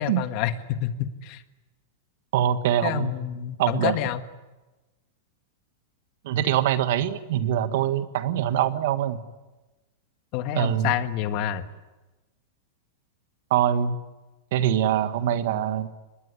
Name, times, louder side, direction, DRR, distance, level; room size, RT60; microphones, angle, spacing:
voice 1, 0.0-1.4 2.8-4.2 10.3-11.7, left 11 dB, 50° left, 10 dB, 1.6 m, -28 dB
voice 2, 2.3-3.1 3.6-3.9 6.2-9.2 10.5-10.9 13.5-14.0 14.5-15.9, right 10 dB, 65° right, 11 dB, 1.6 m, -23 dB
24.5 x 20.0 x 9.8 m, 1.1 s
hypercardioid pair, 130°, 0 cm